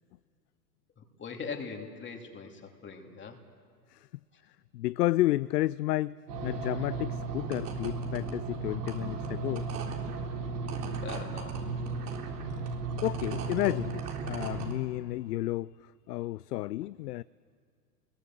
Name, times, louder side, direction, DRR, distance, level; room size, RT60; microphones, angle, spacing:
voice 1, 1.0-3.4 4.3-4.4 11.0-11.8, left 5 dB, 25° left, 2.8 m, -41 dB
voice 2, 4.7-6.2 6.4-9.7 13.0-15.7 16.1-17.2, left 16 dB, 75° left, 0.5 m, -31 dB
sound 1, 6.3-14.7, right 4 dB, 65° right, 3.7 m, -35 dB
25.5 x 21.5 x 7.5 m
hypercardioid pair, 100°, 49 cm